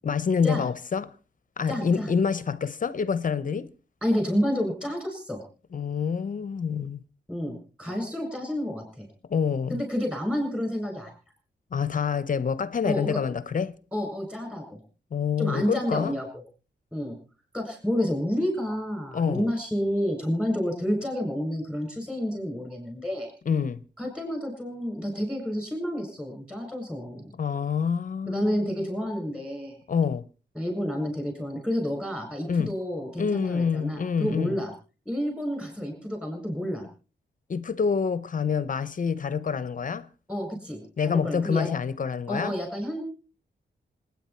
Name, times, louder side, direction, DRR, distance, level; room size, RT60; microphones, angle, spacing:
voice 1, 0.0-1.1 1.6-3.7 5.7-7.0 9.3-9.8 11.7-13.8 15.1-16.2 19.1-19.5 23.5-23.8 27.4-28.7 29.9-30.2 32.5-32.8 33.2-34.6 37.5-40.1 41.0-42.5, left 6 dB, 45° left, 0.7 m, -27 dB
voice 2, 1.7-2.1 4.0-5.4 7.3-9.1 9.7-11.1 12.8-13.2 13.9-14.8 15.4-16.3 16.9-17.2 17.5-23.3 24.0-27.3 28.3-29.8 30.6-34.7 35.1-36.9 40.3-41.7 42.3-43.0, equal, 5° right, 7.1 m, -29 dB
26.5 x 9.7 x 4.4 m
wide cardioid pair, 145°, 18 cm